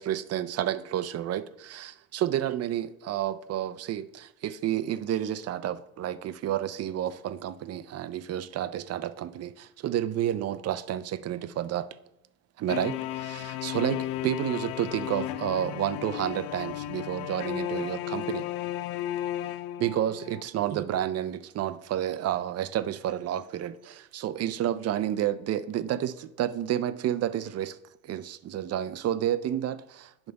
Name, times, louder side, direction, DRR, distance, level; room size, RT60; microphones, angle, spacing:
voice 1, 0.0-11.9 12.6-18.5 19.8-27.8 28.0-30.3, right 11 dB, 45° right, 0.5 m, -30 dB
sound 1, 12.7-20.4, left 13 dB, 80° left, 0.5 m, -34 dB
10.0 x 3.6 x 5.2 m
cardioid pair, 120°, 36 cm